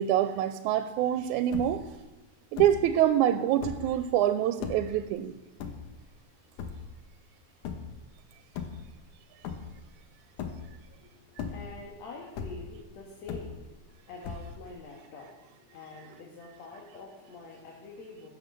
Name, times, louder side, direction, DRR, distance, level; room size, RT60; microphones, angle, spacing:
voice 1, 0.0-1.8 2.5-5.3, right 11 dB, 90° right, 10 dB, 2.0 m, -25 dB
sound 1, 1.1-1.2 1.3-2.0 2.6-3.0 3.5-4.0 4.6-5.0 5.6-6.2 6.6-7.0 7.6-8.0 8.4-9.1 9.4-10.0 10.4-10.9 11.3-11.9 12.4-12.8 13.3-13.9 14.2-14.8, left 6 dB, 85° left, 2.7 m, -38 dB
voice 2, 11.0-18.3, left 3 dB, 65° left, -2 dB, 2.8 m, -46 dB
15.5 x 6.7 x 6.8 m, 1.1 s
omnidirectional pair, 3.4 m